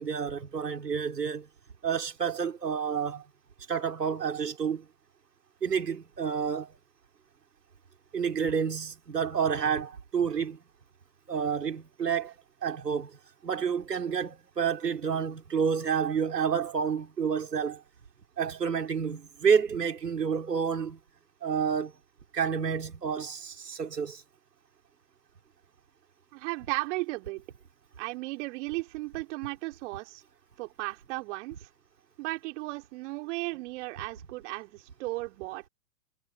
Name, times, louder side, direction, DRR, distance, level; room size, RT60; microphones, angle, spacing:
voice 1, 0.0-1.5 1.8-3.2 3.7-4.9 5.6-6.7 8.1-10.6 11.3-12.3 12.6-17.8 18.4-21.0 21.4-21.9 22.3-24.2, right 6 dB, 85° right, 2.7 m, -29 dB
voice 2, 26.3-27.4 28.0-30.2 30.6-31.7 32.2-35.7, right 22 dB, 50° right, 3.3 m, -35 dB
figure-of-eight pair, 105°, 47 cm